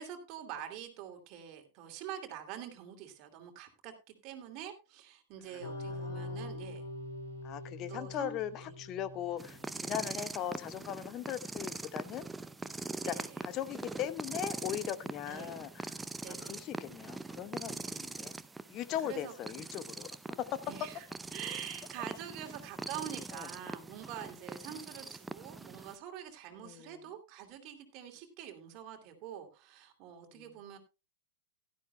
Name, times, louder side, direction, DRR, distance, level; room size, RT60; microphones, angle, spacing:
voice 1, 0.0-6.8 7.9-8.3 8.6-8.7 13.0-13.4 15.2-15.6 16.2-16.6 19.0-19.3 20.7-21.1 21.3-30.8, right 9 dB, 40° right, 4 dB, 2.7 m, -45 dB
sound 1, 5.6-10.4, left 2 dB, 70° left, 3.0 m, -44 dB
voice 2, 5.9-6.5 7.4-12.3 13.0-18.4 18.7-20.1 20.4-20.6 23.3-23.5 24.7-24.8 26.6-27.0 30.3-30.4, left 11 dB, 35° left, 13 dB, 1.0 m, -39 dB
sound 2, 9.4-25.9, right 3 dB, 10° right, 0.6 m, -43 dB
16.5 x 12.5 x 2.2 m, 0.29 s
figure-of-eight pair, 100°, 0 cm